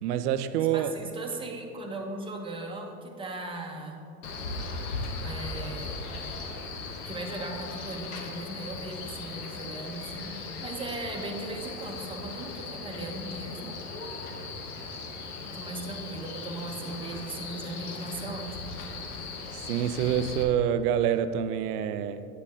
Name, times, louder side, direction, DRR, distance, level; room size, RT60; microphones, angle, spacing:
voice 1, 0.0-1.0 19.5-22.3, right 9 dB, 85° right, 0.6 m, -27 dB
voice 2, 0.7-4.1 5.2-6.0 7.0-13.8 15.4-18.7, right 2 dB, 10° right, 1.3 m, -38 dB
Male speech man speaking, 4.2-20.4, left 3 dB, 90° left, 1.3 m, -38 dB
8.9 x 8.5 x 3.8 m
supercardioid pair, 105°, 45 cm